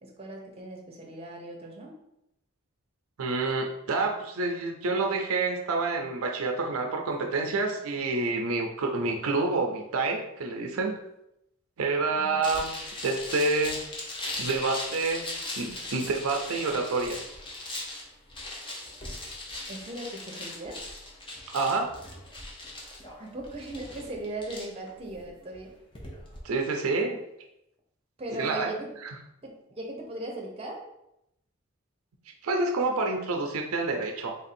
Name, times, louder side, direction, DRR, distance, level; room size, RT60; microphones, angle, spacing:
voice 1, 0.0-2.0 12.2-12.6 19.7-20.8 23.2-25.7 28.2-28.9 29.4-30.8, right 1 dB, 25° right, 0 dB, 0.7 m, -38 dB
voice 2, 3.2-10.9 11.8-12.7 13.0-13.8 14.4-15.3 15.6-17.2 21.5-21.9 26.4-27.2 28.3-28.7 32.4-34.4, right 3 dB, 75° right, 3 dB, 0.5 m, -28 dB
sound 1, 12.4-26.4, left 2 dB, 25° left, 0.7 m, -39 dB
3.4 x 2.6 x 4.2 m, 0.83 s
head